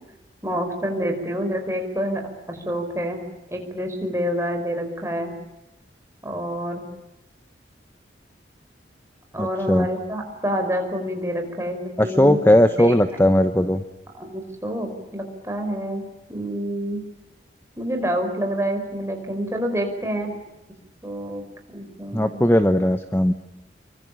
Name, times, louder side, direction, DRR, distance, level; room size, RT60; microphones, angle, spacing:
voice 1, 0.4-2.2 2.5-3.2 3.5-5.3 6.2-6.8 9.3-12.9 14.1-16.0 16.3-17.0 17.8-20.3 21.0-21.4 21.7-22.4, equal, 15° right, 3 dB, 5.2 m, -27 dB
voice 2, 9.4-9.9 12.0-13.8 22.1-23.3, left 1 dB, 10° left, 9 dB, 0.9 m, -18 dB
28.0 x 24.0 x 8.9 m, 0.97 s
head